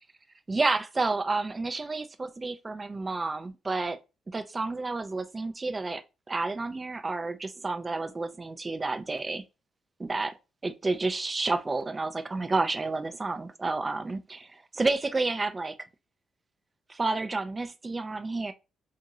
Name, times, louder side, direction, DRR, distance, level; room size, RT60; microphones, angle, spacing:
voice 1, 0.5-4.0 4.3-6.0 6.3-9.4 10.0-10.3 10.6-15.7 16.9-18.5, right 3 dB, 25° right, 0.4 m, -30 dB
2.9 x 2.4 x 2.7 m
cardioid pair, 90°, 0 cm